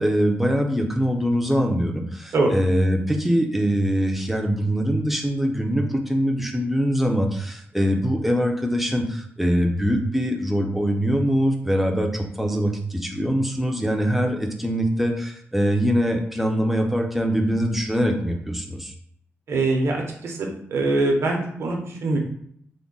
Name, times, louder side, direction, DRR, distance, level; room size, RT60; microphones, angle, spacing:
voice 1, 0.0-18.9, equal, 5° right, 3 dB, 0.5 m, -23 dB
voice 2, 19.5-22.2, right 2 dB, 70° right, 1 dB, 0.7 m, -23 dB
3.6 x 2.1 x 3.8 m, 0.68 s
wide cardioid pair, 135°, 5 cm